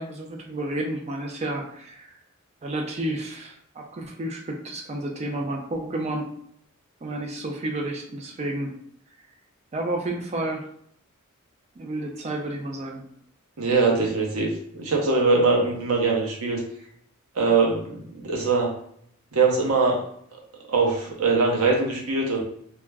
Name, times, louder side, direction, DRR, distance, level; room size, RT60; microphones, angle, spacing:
voice 1, 0.0-2.1 2.6-6.3 7.0-8.7 9.7-10.6 11.8-13.1, right 1 dB, 30° right, 2 dB, 0.3 m, -31 dB
voice 2, 13.6-16.6 17.4-18.7 19.3-20.0 20.7-22.4, right 3 dB, 80° right, 0 dB, 0.7 m, -22 dB
2.3 x 2.0 x 3.3 m, 0.67 s
head